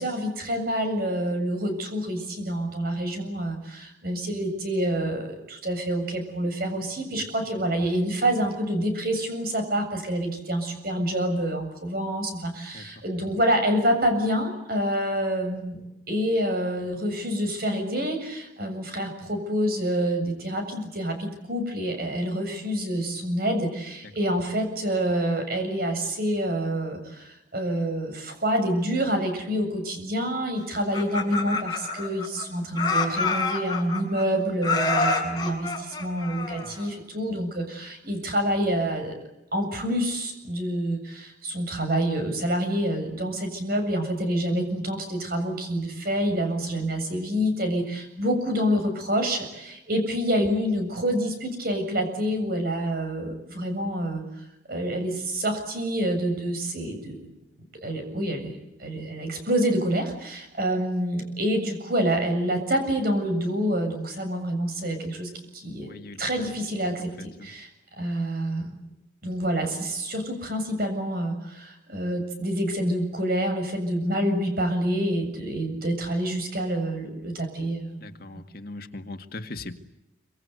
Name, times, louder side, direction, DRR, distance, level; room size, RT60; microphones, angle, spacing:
voice 1, 0.0-15.8 16.1-39.1 39.5-54.2 54.7-57.3 57.8-65.9 66.2-67.7 68.0-68.7 69.2-78.0, equal, 50° right, 6 dB, 7.4 m, -27 dB
Laughter, 30.7-32.4 32.7-34.2 34.6-36.9, left 3 dB, 20° left, 7.1 m, -27 dB
voice 2, 78.0-79.9, left 2 dB, 50° left, 6 dB, 2.1 m, -39 dB
26.5 x 25.5 x 8.3 m, 0.91 s
head